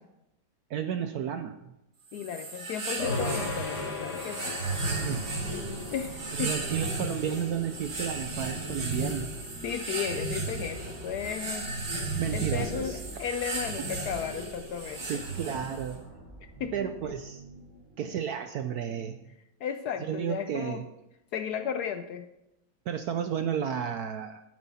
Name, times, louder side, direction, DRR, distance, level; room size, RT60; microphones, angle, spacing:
voice 1, 0.7-1.7 4.7-5.2 6.3-9.3 12.2-13.0 13.8-13.9 15.0-16.0 16.7-17.4 18.0-19.2 20.0-20.9 22.9-24.4, right 8 dB, 70° right, 8 dB, 0.9 m, -32 dB
voice 2, 2.1-4.6 5.9-6.7 9.6-11.7 12.3-15.1 16.6-17.1 19.6-20.8 21.3-22.3, left 8 dB, 75° left, 9 dB, 0.9 m, -35 dB
sound 1, 2.1-16.0, right 2 dB, 55° right, 2.4 m, -34 dB
sound 2, 3.0-12.7, left 4 dB, 55° left, 2.0 m, -41 dB
sound 3, 5.1-18.1, right 1 dB, 40° right, 2.9 m, -47 dB
11.0 x 9.5 x 4.2 m, 0.90 s
omnidirectional pair, 2.1 m